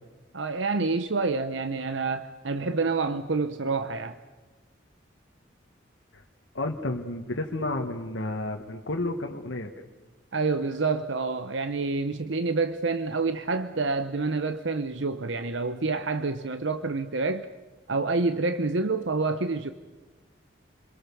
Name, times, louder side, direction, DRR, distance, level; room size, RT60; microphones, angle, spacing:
voice 1, 0.3-4.2 10.3-17.5 17.9-19.7, right 3 dB, 70° right, 0.9 m, -28 dB
voice 2, 6.5-9.7, left 2 dB, 70° left, 1.7 m, -31 dB
29.5 x 22.5 x 7.1 m
head